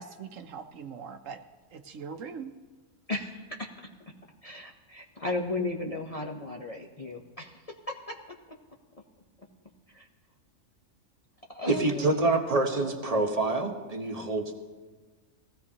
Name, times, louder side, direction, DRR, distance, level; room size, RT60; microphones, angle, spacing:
voice 1, 0.0-1.4 1.7-2.5, right 6 dB, 70° right, 7 dB, 1.0 m, -41 dB
voice 2, 3.1-3.9 4.4-8.6 9.9-10.1 11.5-12.3 12.7-13.3, left 2 dB, 30° left, 0 dB, 0.8 m, -36 dB
voice 3, 11.7-14.6, right 2 dB, 30° right, 4 dB, 1.1 m, -27 dB
20.0 x 16.0 x 2.9 m, 1.3 s
omnidirectional pair, 1.5 m